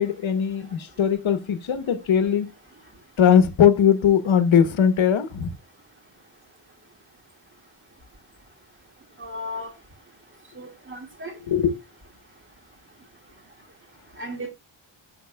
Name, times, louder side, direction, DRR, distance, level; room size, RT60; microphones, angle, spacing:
voice 1, 0.0-2.5 3.2-5.5 11.5-11.8, left 8 dB, 75° left, 1.0 m, -20 dB
voice 2, 9.2-9.7 10.6-11.3 14.2-14.5, left 1 dB, 25° right, 1.8 m, -35 dB
10.5 x 7.6 x 2.2 m
wide cardioid pair, 150°, 47 cm